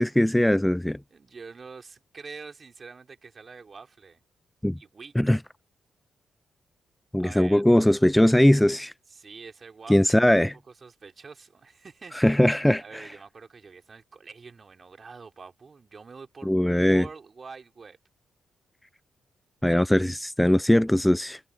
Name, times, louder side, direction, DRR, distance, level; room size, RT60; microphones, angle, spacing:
voice 1, 0.0-1.0 4.6-4.8 5.2-5.4 7.1-8.9 9.9-10.5 12.1-13.0 16.5-17.0 19.6-21.4, left 1 dB, 5° left, 0.4 m, -20 dB
voice 2, 1.1-4.2 4.8-5.1 7.2-7.6 9.1-12.2 12.8-18.0, right 5 dB, 45° right, 4.0 m, -46 dB
hypercardioid pair, 45°, 0 cm